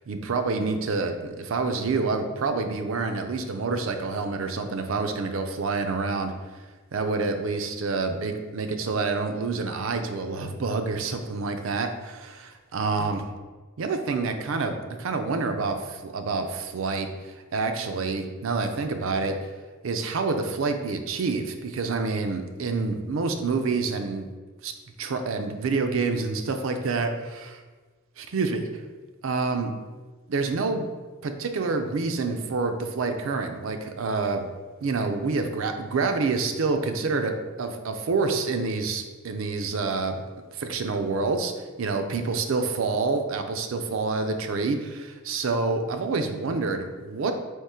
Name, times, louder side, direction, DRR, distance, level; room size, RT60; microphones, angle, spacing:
voice 1, 0.0-6.3 6.9-13.2 13.8-19.4 19.8-24.3 24.6-24.7 25.0-27.6 28.2-28.7 29.2-29.7 30.3-30.9 31.2-34.5 34.8-37.3 37.6-40.2 40.6-41.5 41.8-47.3, right 4 dB, 65° right, 6 dB, 0.4 m, -27 dB
3.6 x 3.0 x 4.2 m, 1.3 s
head